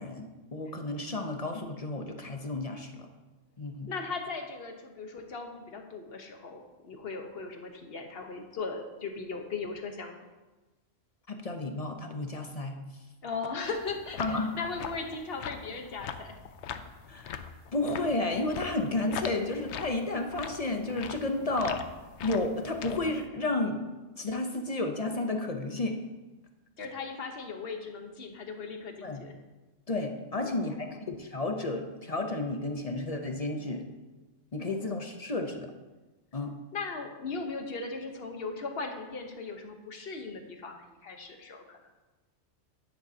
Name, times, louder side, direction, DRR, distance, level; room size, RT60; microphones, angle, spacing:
voice 1, 0.0-3.1 3.6-3.9 11.3-12.8 14.2-14.5 17.1-17.4 17.7-21.9 22.2-26.0 29.0-29.2 29.9-33.8 34.5-35.7 36.3-36.5, left 2 dB, 35° left, 4 dB, 0.7 m, -32 dB
voice 2, 3.9-10.2 13.2-16.3 26.8-29.3 30.4-31.0 36.7-41.8, left 4 dB, 50° left, 4 dB, 1.2 m, -38 dB
sound 1, 13.6-23.2, left 7 dB, 70° left, 0.9 m, -42 dB
10.5 x 10.5 x 2.8 m, 1.2 s
omnidirectional pair, 1.3 m